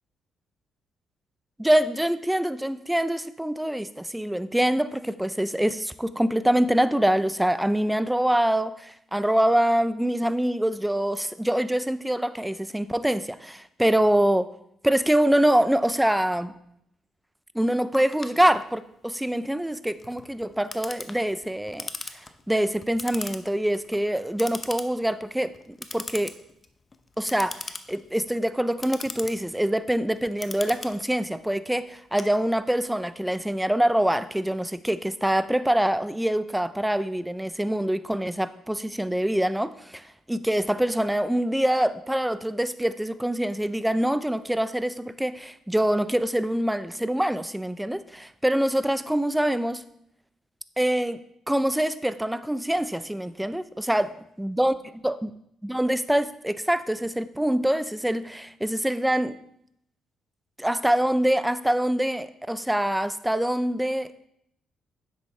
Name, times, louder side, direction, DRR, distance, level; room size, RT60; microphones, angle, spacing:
voice 1, 1.6-14.5 14.8-16.5 17.5-21.9 22.1-26.3 27.2-49.8 50.8-54.7 55.0-55.3 55.6-59.4 60.6-64.1, right 1 dB, 5° right, 14 dB, 0.5 m, -25 dB
Clock, 17.9-32.9, left 3 dB, 30° left, 0.7 m, -41 dB
9.9 x 7.8 x 3.3 m, 0.74 s
cardioid pair, 90°, 0 cm